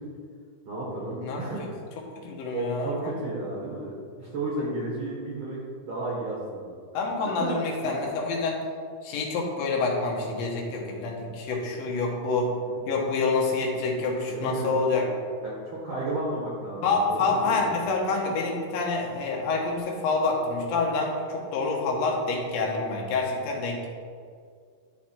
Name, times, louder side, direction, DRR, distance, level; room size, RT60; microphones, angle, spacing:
voice 1, 0.7-1.6 2.5-6.7 7.2-7.5 7.8-7.9 12.6-12.8 14.3-15.0 15.4-17.6, right 2 dB, 50° right, -5 dB, 1.7 m, -33 dB
voice 2, 2.2-2.9 6.9-8.6 9.0-12.5 12.9-15.0 16.8-23.9, left 3 dB, 60° left, -1 dB, 2.1 m, -27 dB
11.0 x 4.1 x 4.4 m, 2.2 s
omnidirectional pair, 3.9 m